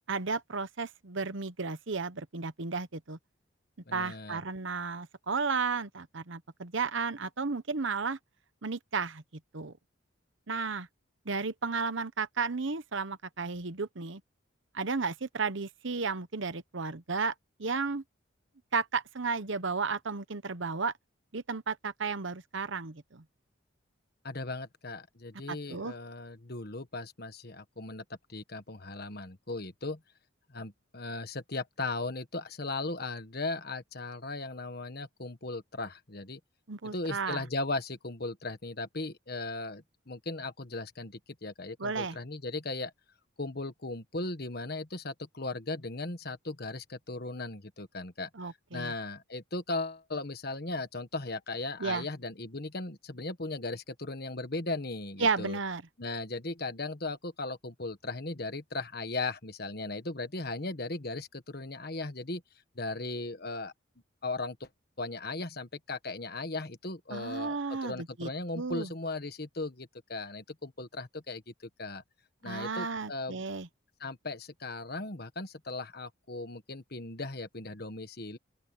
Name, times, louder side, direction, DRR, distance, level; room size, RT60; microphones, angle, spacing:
voice 1, 0.1-3.2 3.9-8.2 8.6-9.2 9.5-9.7 10.5-10.9 11.3-14.2 14.7-17.3 17.6-18.0 18.7-20.9 21.3-23.2 25.5-25.9 36.7-37.4 41.8-42.2 48.3-48.9 51.8-52.1 55.2-55.8 67.1-68.3 68.5-68.9 72.4-73.7, right 4 dB, 65° right, 1.0 m, -33 dB
voice 2, 3.9-4.4 24.2-28.0 28.3-30.0 30.5-36.4 36.8-42.9 43.4-48.3 48.7-55.6 56.0-62.4 62.7-63.7 64.2-64.7 65.0-71.5 71.8-72.0 72.4-73.4 74.0-78.4, left 2 dB, 50° left, 1.5 m, -37 dB
open air
head